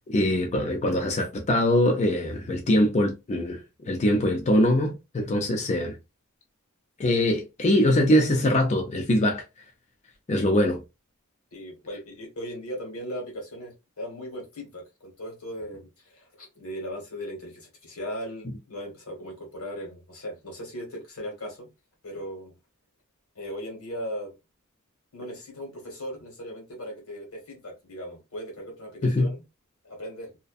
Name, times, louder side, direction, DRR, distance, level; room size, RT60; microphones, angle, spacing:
voice 1, 0.1-5.9 7.0-9.4 10.3-10.8 29.0-29.3, left 1 dB, 30° left, 0.4 m, -23 dB
voice 2, 11.5-21.7 22.0-22.5 23.3-24.4 25.1-29.4 29.8-30.3, equal, 90° left, 1.3 m, -38 dB
2.5 x 2.1 x 2.3 m
head